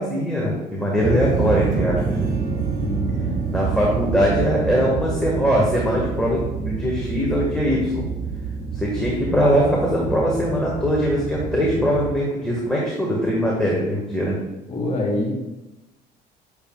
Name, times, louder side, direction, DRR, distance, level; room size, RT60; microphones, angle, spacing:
voice 1, 0.0-2.3 3.5-8.1 8.7-14.4, equal, 5° left, -4 dB, 1.7 m, -21 dB
sound 1, 1.0-12.2, right 5 dB, 55° right, 1.8 m, -27 dB
voice 2, 2.8-3.4 14.7-15.3, left 2 dB, 40° left, -2 dB, 2.5 m, -26 dB
9.3 x 6.8 x 2.4 m, 1.0 s
cardioid pair, 110°, 17 cm